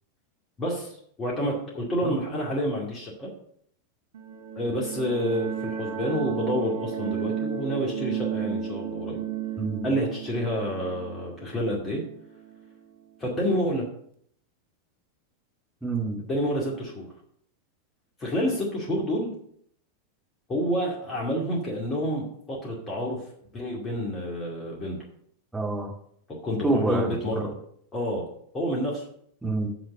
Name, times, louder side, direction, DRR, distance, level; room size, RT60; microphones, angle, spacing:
voice 1, 0.6-3.3 4.6-9.2 9.8-12.0 13.2-13.9 16.2-17.1 18.2-19.3 20.5-23.2 23.5-25.0 26.4-27.5 27.9-28.2 28.5-29.0, equal, 25° left, -3 dB, 2.2 m, -28 dB
sound 1, 4.1-12.7, right 8 dB, 55° right, 0.9 m, -33 dB
voice 2, 15.8-16.2 25.5-25.9 26.6-27.5 29.4-29.7, right 2 dB, 5° right, -2 dB, 2.2 m, -27 dB
7.3 x 6.1 x 6.7 m, 0.66 s
figure-of-eight pair, 90°, 0 cm